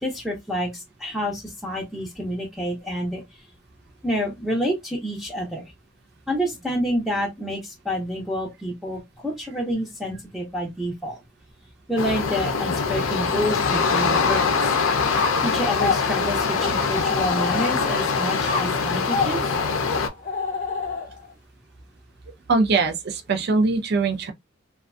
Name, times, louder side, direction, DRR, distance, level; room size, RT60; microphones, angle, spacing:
voice 1, 0.0-3.2 4.0-5.7 6.3-11.2 11.9-14.8 15.4-19.4, equal, ahead, 0.5 m, -28 dB
sound 1, 12.0-20.1, left 5 dB, 85° left, 0.5 m, -23 dB
sound 2, 15.1-18.0 18.4-21.3, left 4 dB, 40° left, 0.6 m, -29 dB
voice 2, 22.5-24.3, right 3 dB, 55° right, 0.5 m, -22 dB
2.4 x 2.3 x 2.3 m
head